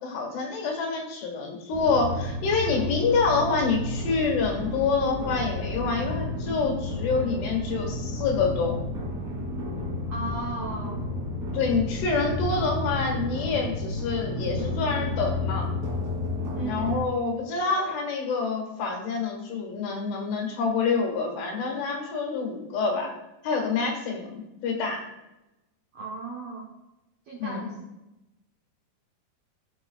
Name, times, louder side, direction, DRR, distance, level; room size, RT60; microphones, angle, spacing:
voice 1, 0.0-8.8 11.5-15.7 16.6-23.1 23.4-25.0 27.4-27.7, left 4 dB, 85° left, 2 dB, 3.7 m, -27 dB
sound 1, 1.7-17.0, left 2 dB, 25° right, 2.5 m, -31 dB
voice 2, 10.1-11.0 16.5-17.0 17.5-17.9 25.9-26.7 27.3-27.7, right 2 dB, 75° right, -2 dB, 1.5 m, -36 dB
14.5 x 5.5 x 2.3 m, 0.98 s
omnidirectional pair, 4.7 m